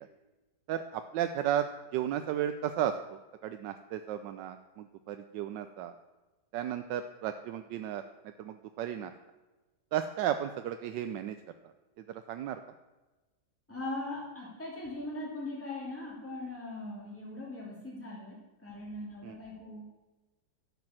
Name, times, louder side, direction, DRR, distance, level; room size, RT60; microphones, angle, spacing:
voice 1, 0.7-1.7 1.9-5.9 6.5-8.0 8.4-9.1 9.9-11.4 12.1-12.6 19.2-19.4, right 10 dB, 85° right, 9 dB, 1.3 m, -34 dB
voice 2, 13.7-20.0, left 2 dB, 5° left, -5 dB, 3.1 m, -40 dB
12.0 x 7.6 x 7.4 m, 1.2 s
omnidirectional pair, 1.9 m